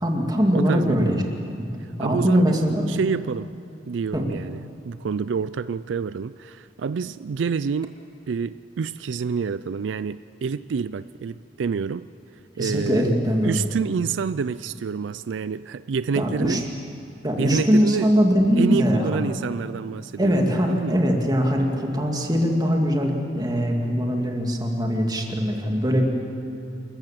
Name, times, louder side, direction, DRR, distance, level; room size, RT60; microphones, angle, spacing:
voice 1, 0.0-1.2 2.0-2.9 4.1-4.2 12.6-13.6 16.1-16.6 17.2-19.3 20.2-26.0, equal, 20° right, 1 dB, 2.4 m, -21 dB
voice 2, 0.5-1.2 2.0-2.6 2.9-3.5 3.9-4.6 4.8-8.0 8.3-12.1 12.6-13.1 13.4-16.6 17.4-18.1 18.6-21.0, right 5 dB, 80° right, 15 dB, 0.4 m, -28 dB
27.5 x 14.5 x 7.6 m, 2.8 s
head